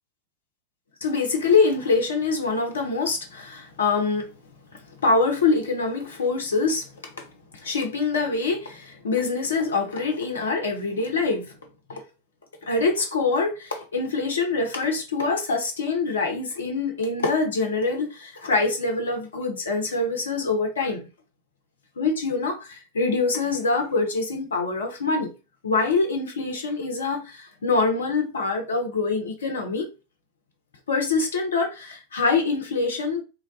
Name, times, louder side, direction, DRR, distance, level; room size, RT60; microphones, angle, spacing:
voice 1, 1.0-4.3 5.0-7.2 7.5-11.5 11.9-12.0 12.6-21.0 22.0-25.3 25.6-29.9 30.9-33.2, left 4 dB, 65° left, 0.6 m, -24 dB
3.2 x 2.2 x 2.4 m
figure-of-eight pair, 90°, 0 cm